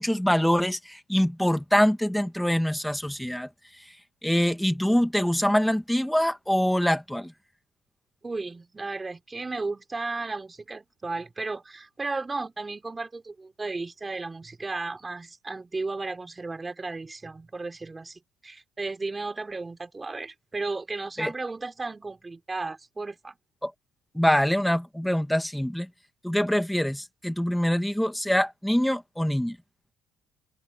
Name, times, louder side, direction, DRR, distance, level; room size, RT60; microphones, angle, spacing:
voice 1, 0.0-3.5 4.2-7.3 21.2-21.3 23.6-23.7 24.1-25.9 26.2-29.6, equal, 5° left, 2.3 m, -24 dB
voice 2, 8.2-23.3, right 3 dB, 20° right, 4.9 m, -34 dB
cardioid pair, 95°, 0 cm